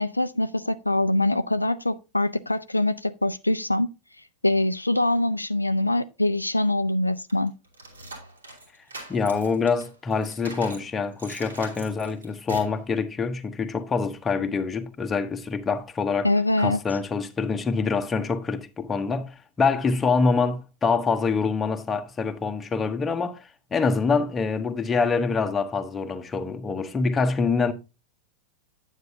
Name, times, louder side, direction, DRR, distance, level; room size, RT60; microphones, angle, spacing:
voice 1, 0.0-3.9 4.4-7.5 16.2-16.8, left 1 dB, 85° left, 0.3 m, -24 dB
sound 1, 7.3-10.9 11.2-12.8, right 2 dB, 75° right, 2.9 m, -42 dB
voice 2, 9.1-16.3 16.6-27.7, left 4 dB, 15° left, 0.9 m, -25 dB
9.4 x 8.2 x 2.7 m
figure-of-eight pair, 90°, 0 cm